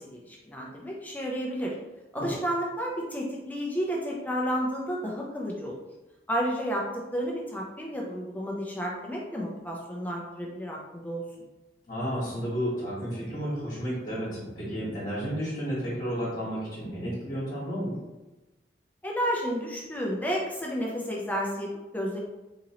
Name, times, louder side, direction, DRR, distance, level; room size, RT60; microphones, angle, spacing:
voice 1, 0.0-1.8 2.1-5.8 6.3-11.2 19.0-22.2, equal, 10° left, -2 dB, 0.5 m, -31 dB
voice 2, 11.9-18.0, equal, 45° left, -9 dB, 1.2 m, -32 dB
3.9 x 2.9 x 2.9 m, 1.1 s
head